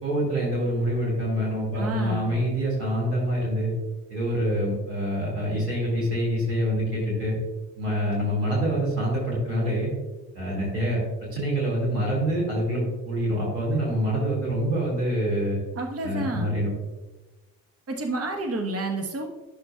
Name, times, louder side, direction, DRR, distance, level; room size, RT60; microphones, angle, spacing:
voice 1, 0.0-3.7 4.1-7.3 7.8-9.9 10.3-11.0 11.3-15.6 16.0-16.7, equal, 90° right, -5 dB, 2.4 m, -26 dB
voice 2, 1.7-2.3 15.7-16.6 17.9-19.3, right 2 dB, 30° right, 3 dB, 1.2 m, -30 dB
11.5 x 6.4 x 2.4 m, 1.1 s
figure-of-eight pair, 45°, 46 cm